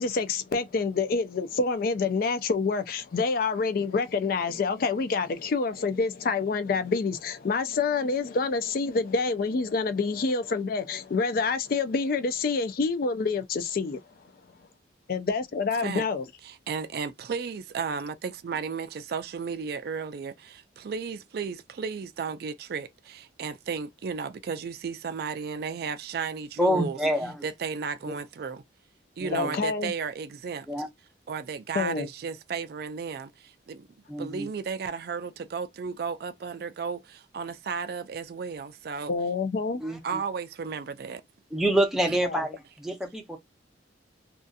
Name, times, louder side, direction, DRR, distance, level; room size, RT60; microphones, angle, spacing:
voice 1, 0.0-14.0 15.1-16.3 29.3-29.9 31.7-32.1 39.1-39.8 42.2-42.4, left 4 dB, 50° left, 0.3 m, -27 dB
voice 2, 16.4-27.0 27.4-28.6 29.2-30.7 31.3-33.9 34.2-39.1 40.0-41.2 42.1-42.2, right 5 dB, 55° right, 0.3 m, -34 dB
voice 3, 26.6-27.3 29.2-29.5 30.7-30.9 34.1-34.5 39.8-40.2 41.5-43.4, right 1 dB, ahead, 0.6 m, -27 dB
2.6 x 2.4 x 2.3 m
head